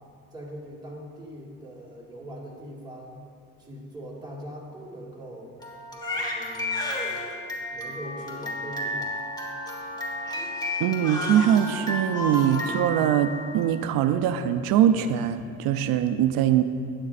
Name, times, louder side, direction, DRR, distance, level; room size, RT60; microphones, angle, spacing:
voice 1, 0.3-3.2 3.6-5.5 6.1-7.2 7.7-9.2, equal, 10° right, -5 dB, 2.0 m, -41 dB
Crying sobbing, 5.6-13.8, left 1 dB, 10° left, 1.4 m, -32 dB
Wind instrument woodwind instrument, 8.0-12.6, left 3 dB, 35° left, 2.2 m, -44 dB
voice 2, 10.8-16.6, right 10 dB, 90° right, 9 dB, 0.5 m, -22 dB
12.0 x 9.7 x 2.5 m, 2.5 s
cardioid pair, 120°, 34 cm